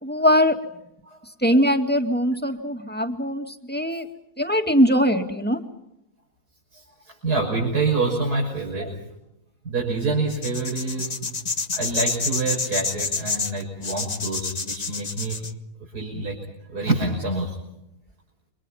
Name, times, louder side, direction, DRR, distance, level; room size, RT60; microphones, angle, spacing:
voice 1, 0.0-0.6 1.4-4.1 4.4-5.6 8.8-8.9, equal, 5° left, 4 dB, 2.2 m, -21 dB
voice 2, 6.7-9.0 9.6-11.4 11.7-15.4 15.8-16.4 16.7-17.6, right 3 dB, 80° right, -2 dB, 6.5 m, -26 dB
sound 1, 10.3-15.5, left 4 dB, 30° left, 1.1 m, -28 dB
29.0 x 25.5 x 5.8 m, 0.85 s
omnidirectional pair, 1.7 m